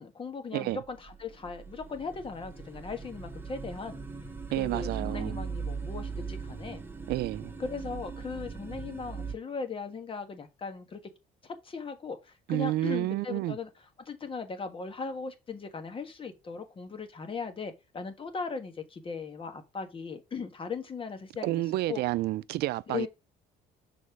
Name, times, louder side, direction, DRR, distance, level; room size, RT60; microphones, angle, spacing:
voice 1, 0.0-4.0 4.6-6.8 7.6-11.0 11.4-13.7 14.0-21.5 21.9-22.0 22.9-23.1, left 5 dB, 30° left, 1.5 m, -38 dB
voice 2, 0.5-0.8 4.5-5.4 7.1-7.5 12.5-13.6 21.4-23.1, right 16 dB, 70° right, 0.4 m, -30 dB
sound 1, 0.7-9.4, right 5 dB, 10° right, 1.3 m, -39 dB
6.5 x 4.3 x 4.8 m
cardioid pair, 110°, 17 cm